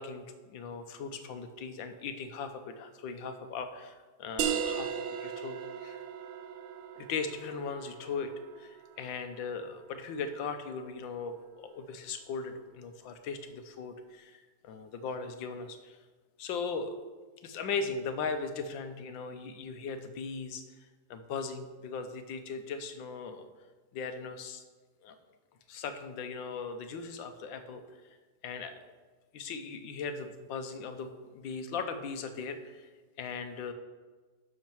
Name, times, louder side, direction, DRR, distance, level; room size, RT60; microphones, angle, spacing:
voice 1, 0.0-6.0 7.0-8.3 8.6-16.0 16.4-16.9 17.4-23.5 23.9-24.6 25.0-25.1 25.7-27.8 28.4-28.8 29.3-32.9 33.2-33.7, left 5 dB, 85° left, 8 dB, 1.5 m, -38 dB
sound 1, 4.4-9.7, right 8 dB, 85° right, 1.5 m, -37 dB
11.0 x 6.5 x 4.6 m, 1.3 s
omnidirectional pair, 2.0 m